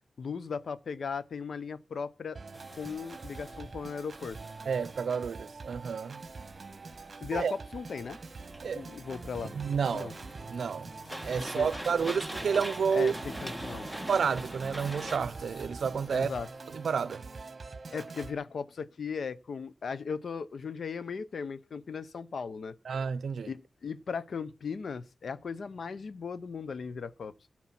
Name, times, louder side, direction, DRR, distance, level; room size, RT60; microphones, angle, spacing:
voice 1, 0.2-2.4 2.7-4.4 7.2-8.2 8.7-9.5 9.9-10.1 11.4-11.7 12.9-13.9 16.1-16.5 17.9-23.0 23.5-27.3, left 5 dB, 75° left, 0.7 m, -37 dB
Organ, 2.3-18.3, right 4 dB, 50° right, 1.2 m, -45 dB
sound 1, 2.5-15.2, equal, 5° left, 1.5 m, -44 dB
voice 2, 4.7-6.2 7.3-7.5 8.6-8.9 9.5-10.1 10.5-10.9 11.2-13.1 14.1-16.3 16.7-17.2 22.9-23.5, right 6 dB, 85° right, 0.5 m, -30 dB
sound 2, 10.1-17.2, equal, 50° left, 4.5 m, -52 dB
13.0 x 6.0 x 5.9 m
cardioid pair, 60°, 0 cm